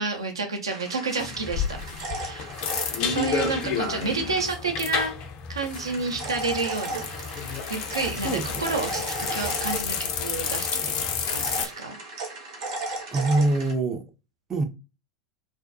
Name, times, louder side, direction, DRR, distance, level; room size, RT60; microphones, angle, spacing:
voice 1, 0.0-2.5 3.0-5.1 5.5-7.0 7.7-10.8 11.3-12.0, right 3 dB, 80° right, 0.5 m, -30 dB
sound 1, 0.7-4.4 5.7-10.3 11.2-13.7, right 2 dB, 65° right, 0.9 m, -36 dB
sound 2, 1.2-11.7, left 6 dB, 45° left, 0.5 m, -31 dB
voice 2, 8.2-8.6 13.1-14.0 14.5-14.6, right 2 dB, 20° right, 0.4 m, -24 dB
2.5 x 2.2 x 2.4 m
figure-of-eight pair, 85°, 2 cm